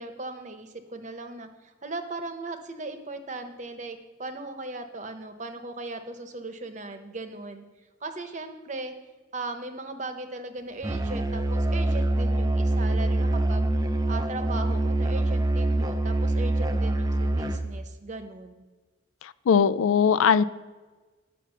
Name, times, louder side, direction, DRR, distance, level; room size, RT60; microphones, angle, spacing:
voice 1, 0.0-7.6 8.0-8.9 9.3-13.7 14.1-18.6, right 2 dB, 35° right, 0.9 m, -38 dB
Musical instrument, 10.8-17.7, right 1 dB, 20° right, 0.5 m, -25 dB
voice 2, 19.2-20.4, left 6 dB, 85° left, 0.4 m, -20 dB
9.9 x 5.9 x 6.9 m
head